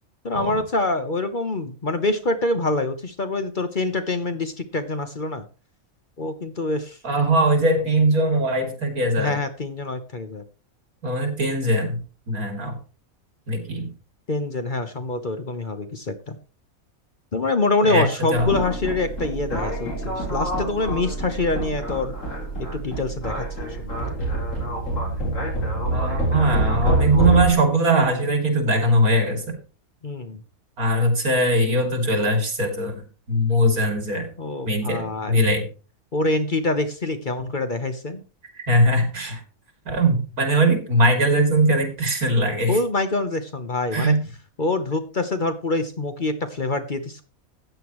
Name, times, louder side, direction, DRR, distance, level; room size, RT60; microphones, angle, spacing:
voice 1, 0.2-5.5 6.2-7.0 9.2-10.4 14.3-16.4 17.3-22.2 22.7-24.0 30.0-30.4 34.4-35.4 36.1-38.2 42.7-44.1 44.6-47.2, left 2 dB, 40° left, 8 dB, 1.0 m, -25 dB
voice 2, 7.0-9.4 11.0-12.0 12.3-12.8 13.5-13.9 17.8-18.1 18.3-18.5 25.9-29.6 30.8-34.3 34.6-35.6 38.7-39.4 39.8-42.8 43.9-44.2, right 1 dB, 85° right, 4 dB, 3.3 m, -21 dB
sound 1, 18.3-27.5, right 2 dB, 60° left, 4.4 m, -26 dB
14.5 x 9.1 x 3.1 m, 0.34 s
omnidirectional pair, 1.5 m